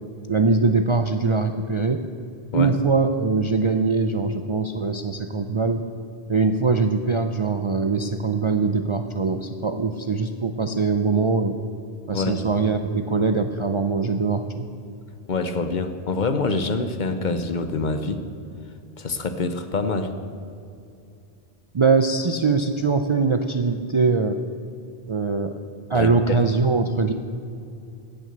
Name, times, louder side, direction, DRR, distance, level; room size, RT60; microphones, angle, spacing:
voice 1, 0.3-2.0 2.5-5.8 6.3-11.6 12.1-14.7 21.7-24.4 25.1-25.6 25.9-27.1, right 4 dB, 45° right, 7 dB, 0.4 m, -22 dB
voice 2, 12.1-12.4 15.3-18.3 19.0-20.1 25.9-26.4, left 3 dB, 50° left, 9 dB, 0.8 m, -26 dB
15.5 x 6.2 x 7.9 m, 2.5 s
omnidirectional pair, 1.1 m